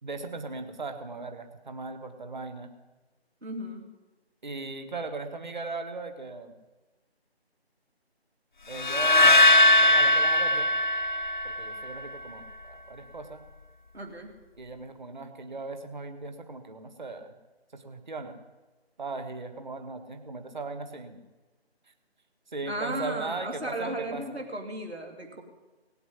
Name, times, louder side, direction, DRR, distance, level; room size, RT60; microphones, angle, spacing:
voice 1, 0.0-2.7 4.4-6.5 8.7-10.7 11.4-13.4 14.6-17.3 17.7-18.4 19.0-21.2 22.5-24.4, right 3 dB, 45° right, 7 dB, 1.8 m, -38 dB
voice 2, 3.4-3.9 13.9-14.3 22.7-25.4, right 1 dB, 75° right, 3 dB, 3.0 m, -35 dB
sound 1, 8.8-11.9, left 1 dB, 50° left, 0.4 m, -20 dB
18.0 x 7.9 x 9.9 m, 1.2 s
figure-of-eight pair, 160°, 32 cm